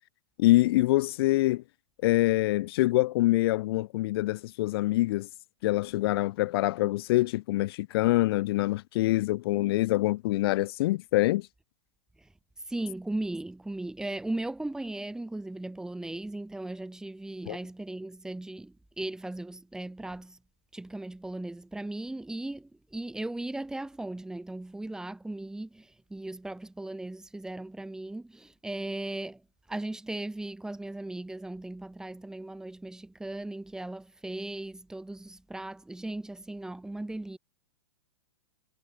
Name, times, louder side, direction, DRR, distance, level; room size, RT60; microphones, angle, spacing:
voice 1, 0.4-1.6 2.0-5.3 5.6-11.5 17.5-17.6, left 18 dB, 50° left, 0.9 m, -25 dB
voice 2, 12.7-20.4 20.7-29.4 29.7-37.4, right 2 dB, 5° right, 5.1 m, -37 dB
hypercardioid pair, 140°, 16 cm